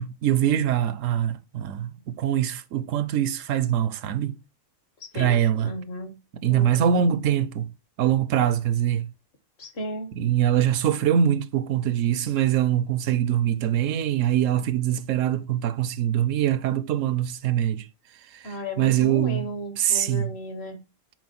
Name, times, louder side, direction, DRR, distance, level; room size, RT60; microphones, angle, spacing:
voice 1, 0.0-4.3 5.1-5.7 6.4-7.7 8.0-9.1 10.2-17.8 18.4-19.5 19.8-20.3, right 10 dB, 80° right, 0.9 m, -23 dB
voice 2, 5.1-6.1 6.5-7.1 9.6-10.1 18.4-20.8, left 1 dB, 55° left, 1.5 m, -34 dB
6.3 x 4.2 x 4.1 m
omnidirectional pair, 1.3 m